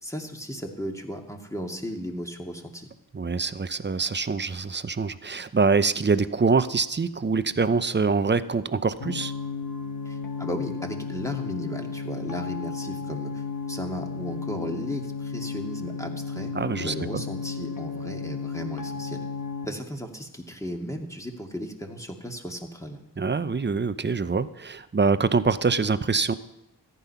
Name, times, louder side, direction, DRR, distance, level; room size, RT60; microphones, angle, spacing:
voice 1, 0.0-2.9 10.1-16.5 16.8-19.2 19.6-23.0, equal, 10° left, 3 dB, 2.1 m, -35 dB
voice 2, 3.1-9.3 16.5-17.2 23.2-26.3, right 4 dB, 25° right, 13 dB, 0.7 m, -24 dB
sound 1, 9.0-19.6, left 5 dB, 55° left, 1.7 m, -33 dB
14.0 x 10.0 x 5.7 m, 0.88 s
cardioid pair, 55°, 40 cm